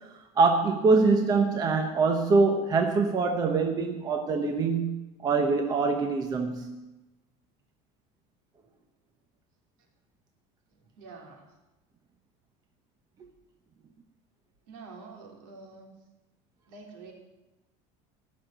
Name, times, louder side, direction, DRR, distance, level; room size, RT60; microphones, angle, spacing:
voice 1, 0.4-6.7, right 4 dB, 25° right, 4 dB, 1.0 m, -24 dB
voice 2, 11.0-11.4 14.7-15.9 16.7-17.1, right 4 dB, 70° right, 1 dB, 3.8 m, -46 dB
17.0 x 6.6 x 9.1 m, 1.1 s
cardioid pair, 170°, 16 cm